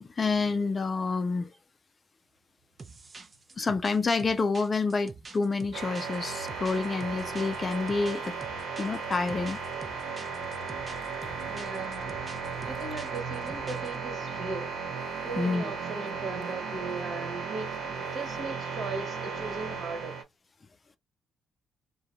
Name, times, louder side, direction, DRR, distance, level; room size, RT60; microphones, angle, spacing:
voice 1, 0.0-1.5 3.6-8.3 8.8-9.6 15.4-15.6, left 4 dB, 35° left, 0.4 m, -28 dB
sound 1, 2.8-14.0, right 4 dB, 30° right, 0.6 m, -47 dB
sound 2, 5.7-20.2, right 5 dB, 90° right, 0.9 m, -35 dB
voice 2, 11.5-12.2 12.6-14.7 15.2-20.2, right 3 dB, 50° right, 1.4 m, -38 dB
2.4 x 2.3 x 2.8 m
cardioid pair, 90°, 0 cm